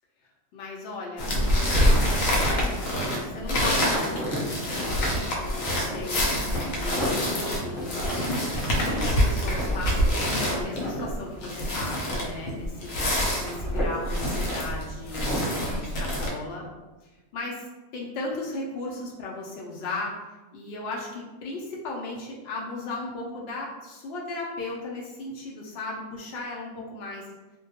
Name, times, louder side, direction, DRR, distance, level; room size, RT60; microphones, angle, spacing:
voice 1, 0.5-16.7 17.0-27.3, left 2 dB, 65° left, -3 dB, 0.7 m, -36 dB
sound 1, 1.2-16.3, equal, 85° left, 1.0 m, -26 dB
sound 2, 3.7-15.5, equal, 5° left, 1.0 m, -37 dB
2.2 x 2.2 x 2.8 m, 1.1 s
omnidirectional pair, 1.3 m